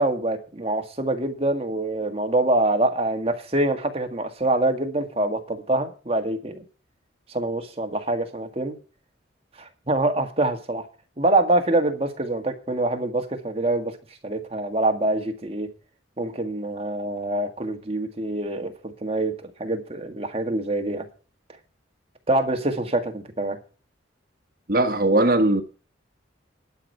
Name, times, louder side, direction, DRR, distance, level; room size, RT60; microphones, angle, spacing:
voice 1, 0.0-6.6 7.3-8.8 9.6-10.8 11.2-14.0 14.2-15.7 16.2-18.7 19.0-21.1 22.3-23.6, right 2 dB, 30° right, 1.8 m, -25 dB
voice 2, 24.7-25.6, right 2 dB, 45° right, 1.5 m, -19 dB
11.5 x 6.0 x 7.9 m
head